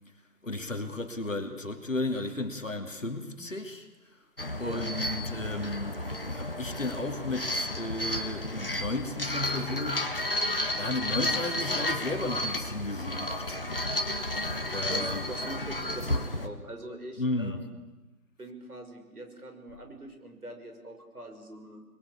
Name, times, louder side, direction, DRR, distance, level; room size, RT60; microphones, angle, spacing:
voice 1, 0.4-3.9 4.6-6.0 6.3-10.3 10.8-13.6 14.7-15.2 17.2-17.6, left 2 dB, 50° left, 5 dB, 2.8 m, -34 dB
sound 1, 4.4-16.5, left 1 dB, 35° left, 1.4 m, -32 dB
voice 2, 14.2-17.7 18.4-21.8, right 1 dB, 65° right, 5 dB, 5.9 m, -43 dB
27.5 x 22.0 x 8.5 m, 1.1 s
figure-of-eight pair, 170°, 48 cm